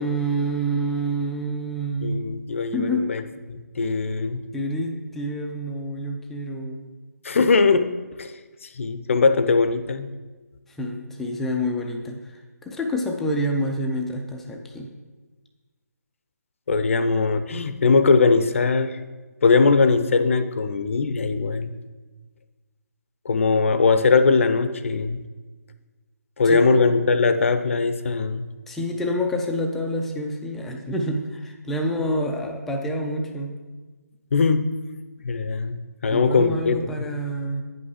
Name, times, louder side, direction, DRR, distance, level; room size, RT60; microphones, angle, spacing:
voice 1, 0.0-2.3 2.7-3.4 4.5-6.8 10.7-14.9 26.4-26.8 28.7-33.6 36.1-37.6, equal, 5° left, 2 dB, 0.4 m, -28 dB
voice 2, 2.0-3.2 3.5-4.4 7.2-7.9 8.2-8.3 8.6-10.1 16.7-19.0 19.4-21.7 23.2-25.2 26.4-28.5 34.3-34.7 35.2-37.1, left 4 dB, 50° left, 11 dB, 0.6 m, -20 dB
9.5 x 5.3 x 4.9 m, 1.3 s
figure-of-eight pair, 150°, 9 cm